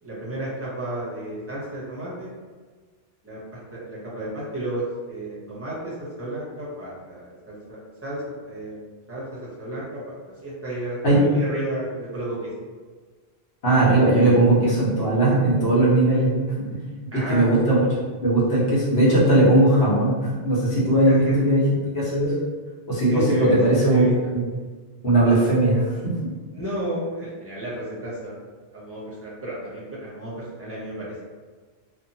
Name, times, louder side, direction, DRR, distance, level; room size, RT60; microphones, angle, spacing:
voice 1, 0.0-2.3 3.2-3.4 3.7-10.1 10.4-12.5 17.1-17.5 21.1-21.3 23.1-23.6 23.9-24.1 26.5-28.4 28.7-31.2, right 1 dB, 15° right, -7 dB, 0.7 m, -32 dB
voice 2, 13.6-16.8 17.1-21.6 21.9-22.3 22.9-24.0 24.3-24.4 25.0-26.1, right 1 dB, 70° left, -8 dB, 1.2 m, -19 dB
2.9 x 2.3 x 2.6 m, 1.5 s
omnidirectional pair, 1.1 m